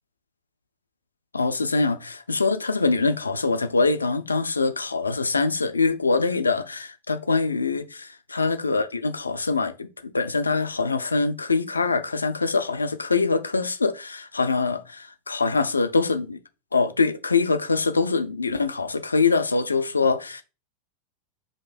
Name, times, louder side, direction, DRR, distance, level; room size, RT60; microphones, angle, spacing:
voice 1, 1.3-16.4 16.7-20.4, left 4 dB, 80° left, 0.3 m, -24 dB
5.6 x 2.6 x 2.4 m
figure-of-eight pair, 90°, 0 cm